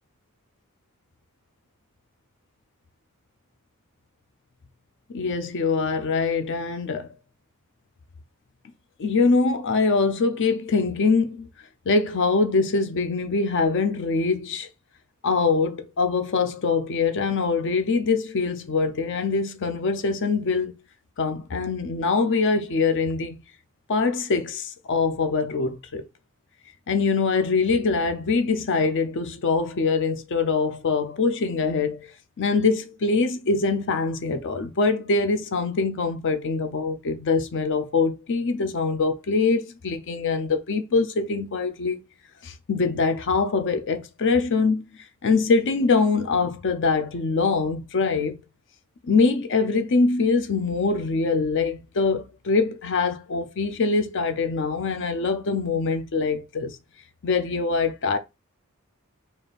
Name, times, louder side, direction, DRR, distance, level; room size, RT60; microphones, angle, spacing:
voice 1, 5.1-7.1 9.0-11.5 11.9-14.7 15.2-20.8 21.2-23.4 23.9-26.0 26.9-32.1 32.4-42.0 42.4-44.8 45.2-48.4 49.1-56.8 57.2-58.2, left 4 dB, 60° left, 0.5 m, -23 dB
3.5 x 2.5 x 4.0 m
head